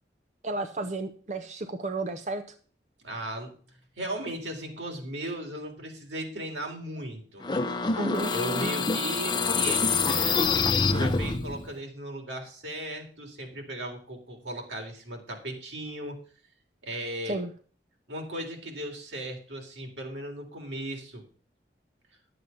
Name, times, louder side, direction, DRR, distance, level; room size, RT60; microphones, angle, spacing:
voice 1, 0.4-2.4 8.0-8.3 17.3-17.5, right 2 dB, 40° right, 8 dB, 0.7 m, -32 dB
voice 2, 3.0-3.5 4.0-7.4 8.3-16.2 16.8-17.4 18.1-21.2, right 1 dB, 90° right, 1 dB, 3.5 m, -37 dB
sound 1, 7.4-11.7, left 4 dB, 25° left, 0.7 m, -26 dB
11.0 x 7.8 x 5.6 m, 0.43 s
head